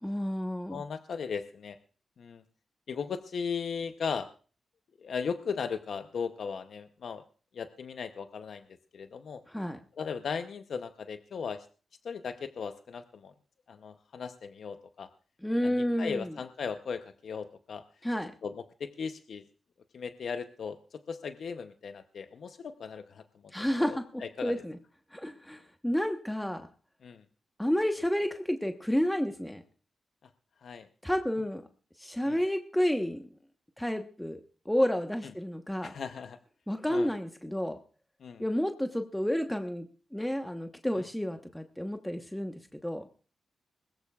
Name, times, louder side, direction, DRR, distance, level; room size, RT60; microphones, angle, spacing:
voice 1, 0.0-0.8 9.5-9.8 15.4-16.4 18.0-18.3 23.5-24.8 25.1-26.6 27.6-29.6 31.0-31.6 32.0-33.2 33.8-35.9 36.7-37.8 38.4-39.9 40.1-42.5 42.8-43.1, equal, 5° left, 5 dB, 1.1 m, -30 dB
voice 2, 0.7-1.8 2.2-2.4 2.9-4.3 5.0-7.2 7.5-8.6 8.9-9.4 10.0-11.7 12.0-13.3 13.7-15.1 15.6-17.8 18.4-19.4 19.9-23.2 23.9-24.5 27.0-27.2 30.6-30.9 32.3-32.4 35.8-36.4 36.9-37.1 38.2-38.4, left 6 dB, 70° left, 9 dB, 0.7 m, -37 dB
21.0 x 14.0 x 2.4 m, 0.38 s
cardioid pair, 65°, 0 cm